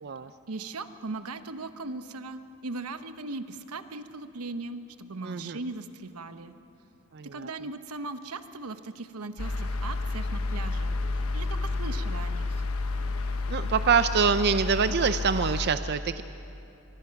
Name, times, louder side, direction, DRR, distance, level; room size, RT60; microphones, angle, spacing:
voice 1, 0.5-6.5 7.2-12.6, right 3 dB, 85° right, 10 dB, 1.1 m, -38 dB
voice 2, 5.2-5.6 7.1-7.5 13.5-16.2, right 6 dB, 50° right, 11 dB, 0.5 m, -25 dB
sound 1, 9.4-15.7, left 3 dB, 70° left, 1.1 m, -30 dB
25.5 x 23.5 x 5.9 m, 2.8 s
head